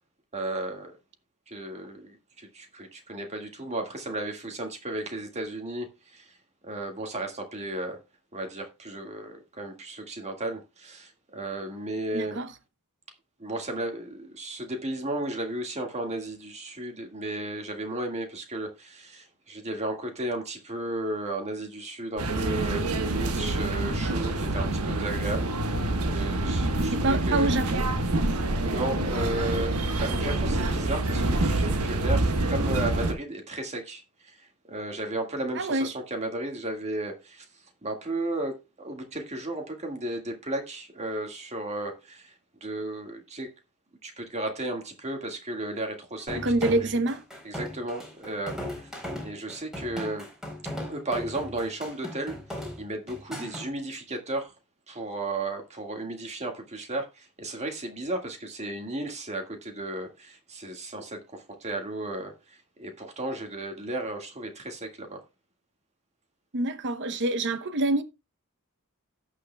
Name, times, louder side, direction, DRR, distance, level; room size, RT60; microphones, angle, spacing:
voice 1, 0.3-1.0 1.5-6.4 6.6-8.0 8.3-12.4 13.4-25.5 26.1-27.5 28.3-37.5 37.8-42.3 42.6-43.5 44.0-46.9 47.4-48.9 49.2-50.3 50.9-54.5 54.9-65.2, right 2 dB, 30° right, 1.8 m, -34 dB
voice 2, 12.1-12.5 26.9-27.9 35.5-35.9 46.3-47.2 66.5-68.0, right 2 dB, 55° right, 0.9 m, -26 dB
sound 1, 22.2-33.1, right 2 dB, 80° right, 1.2 m, -26 dB
sound 2, 46.3-53.7, equal, ahead, 3.8 m, -37 dB
17.0 x 6.5 x 2.2 m
head